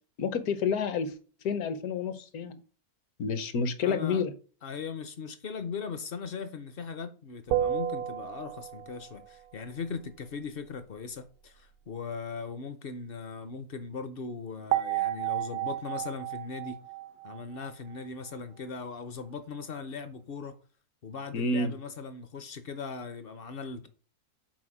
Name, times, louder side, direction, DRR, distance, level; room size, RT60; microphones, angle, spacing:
voice 1, 0.2-1.1 1.4-2.6 3.2-4.3 21.3-21.7, left 5 dB, 75° left, 1.3 m, -29 dB
voice 2, 3.8-4.2 4.6-16.8 17.2-20.6 21.0-23.9, left 5 dB, 55° left, 0.6 m, -39 dB
sound 1, 7.5-9.0 14.7-18.1, right 11 dB, 75° right, 1.1 m, -32 dB
6.1 x 4.6 x 4.8 m
omnidirectional pair, 1.6 m